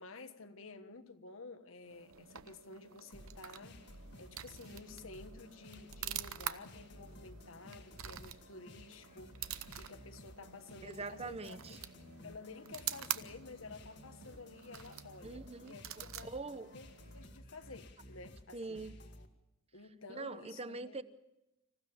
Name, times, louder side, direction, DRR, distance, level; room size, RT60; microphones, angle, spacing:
voice 1, 0.0-11.8 12.2-16.3 16.7-18.8 19.7-21.0, left 3 dB, 70° left, 1.5 m, -52 dB
sound 1, 1.8-17.4, right 11 dB, 80° right, 0.9 m, -47 dB
sound 2, 3.1-19.3, left 1 dB, 55° left, 1.9 m, -55 dB
voice 2, 10.8-11.8 15.2-15.7 16.2-16.7 18.5-19.0 20.1-21.0, right 3 dB, 30° right, 0.9 m, -43 dB
26.0 x 15.5 x 7.1 m
head